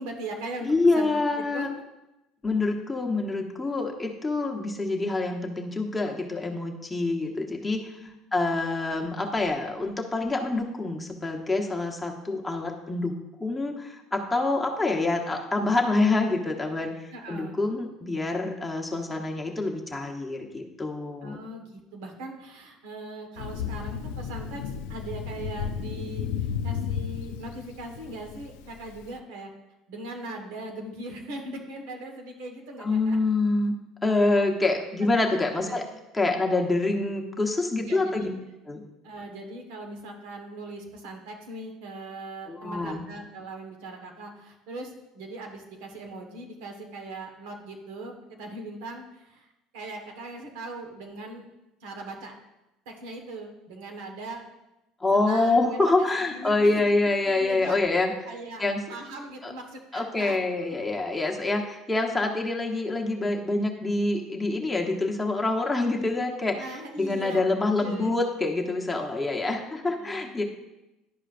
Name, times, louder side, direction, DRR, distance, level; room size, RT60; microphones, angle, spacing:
voice 1, 0.0-1.1 1.4-1.7 8.0-8.4 17.1-17.6 21.2-29.5 29.9-33.2 35.1-35.3 35.6-35.8 37.9-38.3 39.0-49.5 49.7-51.5 51.8-52.3 52.8-54.4 55.1-56.8 57.2-57.8 58.2-58.6 58.9-60.4 66.6-68.1 69.4-70.4, right 2 dB, 85° right, 2 dB, 1.3 m, -40 dB
voice 2, 0.6-1.7 2.4-7.9 8.3-13.1 13.4-16.9 17.3-21.4 32.8-33.7 34.0-35.8 36.1-38.3 38.7-38.8 42.4-43.0 55.0-58.1 58.6-58.8 59.4-59.5 59.9-66.6 67.0-70.4, left 2 dB, 15° left, 0 dB, 1.1 m, -26 dB
Thunder, 23.4-29.1, left 8 dB, 85° left, 0.4 m, -33 dB
11.5 x 4.9 x 2.5 m, 0.95 s
supercardioid pair, 100°, 0 cm